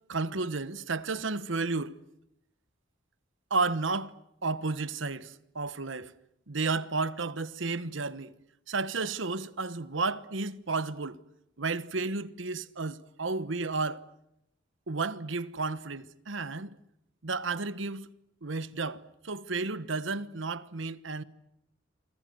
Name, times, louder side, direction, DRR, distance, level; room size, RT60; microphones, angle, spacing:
voice 1, 0.1-2.0 3.5-4.2 4.4-6.1 6.5-8.3 8.7-11.2 11.6-14.1 14.9-16.7 17.2-18.1 18.4-21.2, right 3 dB, 75° right, 1.2 m, -32 dB
27.5 x 25.0 x 7.9 m
head